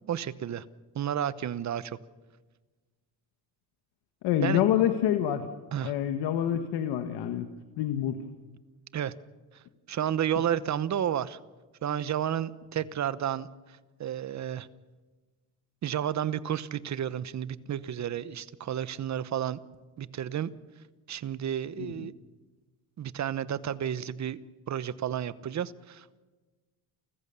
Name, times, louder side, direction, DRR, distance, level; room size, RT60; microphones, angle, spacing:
voice 1, 0.1-0.6 0.9-2.0 4.4-4.6 5.7-5.9 8.9-9.1 9.9-11.4 11.8-13.5 14.0-14.7 15.8-19.6 20.0-20.5 21.1-22.1 23.0-24.4 24.7-26.2, right 10 dB, 45° right, 17 dB, 1.0 m, -31 dB
voice 2, 4.2-5.4 5.8-7.5 7.8-8.2 21.8-22.1, left 10 dB, 90° left, 7 dB, 1.5 m, -27 dB
30.0 x 14.5 x 6.9 m, 1.3 s
cardioid pair, 105°, 40 cm